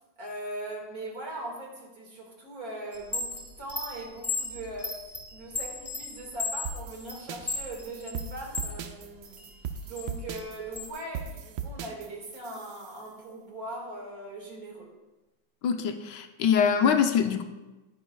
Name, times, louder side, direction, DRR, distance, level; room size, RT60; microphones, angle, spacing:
voice 1, 0.2-5.0 5.3-9.5 9.9-14.9, right 1 dB, 55° right, -1 dB, 2.4 m, -40 dB
Chime, 2.9-8.8 9.2-10.9, left 3 dB, 15° left, 0.5 m, -35 dB
sound 1, 6.7-13.0, right 7 dB, 70° right, 1.1 m, -39 dB
voice 2, 15.6-17.4, left 7 dB, 80° left, 7 dB, 1.3 m, -24 dB
12.0 x 9.9 x 2.3 m, 1.1 s
omnidirectional pair, 2.0 m